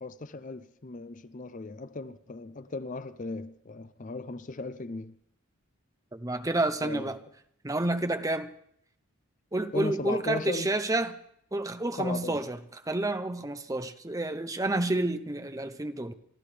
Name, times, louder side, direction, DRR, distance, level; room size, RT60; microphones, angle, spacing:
voice 1, 0.0-5.2 6.8-7.2 9.7-10.7 12.0-12.4, left 3 dB, 35° left, 0.5 m, -37 dB
voice 2, 6.1-7.2 7.6-8.5 9.5-11.2 11.5-12.6 12.8-16.1, right 2 dB, 15° right, 0.7 m, -29 dB
28.0 x 13.0 x 3.3 m
head